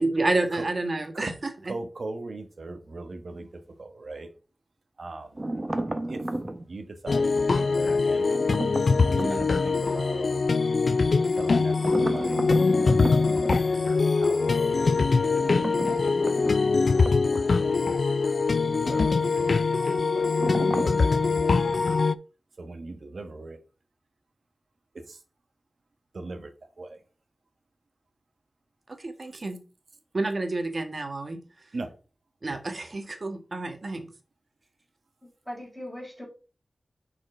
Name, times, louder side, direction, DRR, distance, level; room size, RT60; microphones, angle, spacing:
voice 1, 0.0-1.7 9.2-9.4 29.0-29.6 30.1-31.4 32.4-34.1, right 2 dB, 50° right, 6 dB, 1.5 m, -29 dB
voice 2, 1.6-3.5 3.8-4.3 5.0-5.5 6.1-6.2 6.7-8.4 9.1-10.5 11.3-13.0 14.0-14.9 16.0-17.0 17.6-18.2 18.8-19.5 19.8-20.4 20.8-22.0 22.6-23.6 25.1-25.2 26.1-26.5 26.8-27.0 31.7-31.9 32.5-32.6, right 3 dB, 65° right, 7 dB, 1.3 m, -40 dB
sound 1, 5.3-6.7 8.2-9.7 11.8-13.6 15.4-17.8 18.1-18.2 20.4-21.1, right 1 dB, 25° right, 0.8 m, -33 dB
sound 2, 7.1-22.2, left 4 dB, 70° left, 0.3 m, -23 dB
voice 3, 35.2-36.2, equal, 5° left, -4 dB, 3.8 m, -40 dB
6.6 x 4.8 x 4.3 m, 0.35 s
wide cardioid pair, 75°, 0 cm